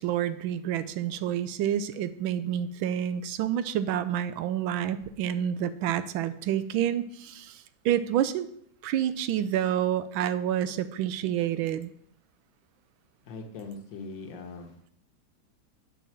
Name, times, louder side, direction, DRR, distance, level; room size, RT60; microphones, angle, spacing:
voice 1, 0.0-7.5 7.8-8.5 8.8-11.9, right 10 dB, 85° right, 13 dB, 1.4 m, -28 dB
voice 2, 13.3-14.8, left 3 dB, 70° left, 3 dB, 1.8 m, -41 dB
8.9 x 4.6 x 7.3 m, 0.68 s
omnidirectional pair, 2.1 m